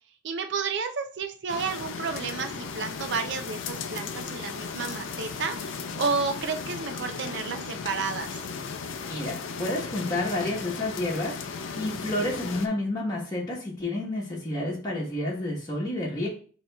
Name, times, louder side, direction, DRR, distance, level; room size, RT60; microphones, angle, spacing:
voice 1, 0.2-8.4, right 5 dB, 60° right, 7 dB, 0.5 m, -31 dB
sound 1, 1.5-12.7, left 5 dB, 80° left, 0.5 m, -36 dB
voice 2, 9.1-16.3, left 1 dB, 20° left, -5 dB, 1.1 m, -30 dB
8.1 x 2.9 x 2.3 m, 0.42 s
head